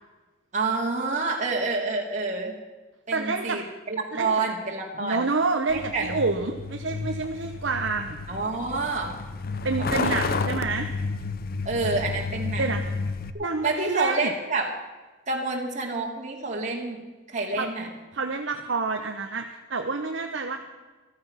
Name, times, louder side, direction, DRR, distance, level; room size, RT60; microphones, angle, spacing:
voice 1, 0.5-2.5 3.1-5.2 5.7-6.1 8.3-9.1 10.0-10.2 11.6-13.0 13.3-14.7 15.3-17.0 17.3-17.9, right 3 dB, 40° right, -1 dB, 2.6 m, -28 dB
voice 2, 3.1-3.6 4.1-4.3 5.0-8.2 9.6-10.9 12.6-12.8 13.4-14.3 17.6-17.7 18.1-20.6, right 3 dB, 65° right, 4 dB, 1.0 m, -28 dB
Truck, 5.7-13.3, left 4 dB, 50° left, 0.8 m, -31 dB
14.5 x 13.5 x 5.8 m, 1.3 s
head